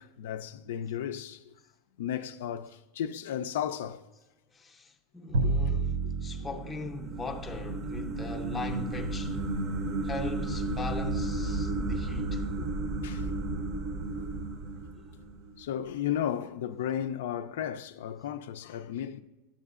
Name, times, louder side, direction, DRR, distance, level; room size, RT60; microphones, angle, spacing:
voice 1, 0.0-1.5 2.0-4.0 5.4-5.5 9.8-9.9 13.0-13.3 15.6-19.2, left 10 dB, 85° left, 0.3 m, -34 dB
voice 2, 4.5-9.4 10.0-12.5, left 3 dB, 15° left, 0.5 m, -40 dB
Bowed string instrument, 5.3-11.5, right 3 dB, 85° right, 0.4 m, -34 dB
sound 1, 6.4-15.6, right 2 dB, 35° right, 0.6 m, -33 dB
8.9 x 7.1 x 2.4 m
supercardioid pair, 150°, 0 cm